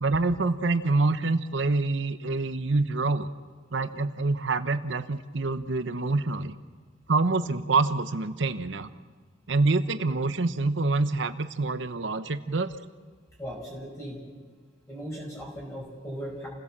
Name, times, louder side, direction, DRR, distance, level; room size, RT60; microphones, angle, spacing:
voice 1, 0.0-3.3 3.7-6.5 7.1-8.9 9.5-12.7, right 3 dB, 70° right, 10 dB, 0.8 m, -26 dB
voice 2, 13.4-14.2 14.9-16.5, equal, 15° left, -4 dB, 5.2 m, -37 dB
29.0 x 16.5 x 7.4 m, 1.5 s
head